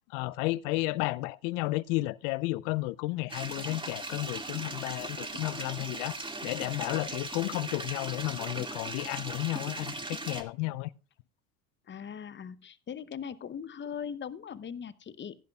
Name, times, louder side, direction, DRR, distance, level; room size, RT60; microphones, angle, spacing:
voice 1, 0.1-10.9, left 20 dB, 70° left, 0.6 m, -32 dB
sound 1, 3.3-10.4, right 2 dB, 10° right, 1.9 m, -39 dB
voice 2, 11.9-15.4, left 7 dB, 25° left, 0.8 m, -40 dB
16.5 x 10.5 x 2.3 m
hypercardioid pair, 70°, 41 cm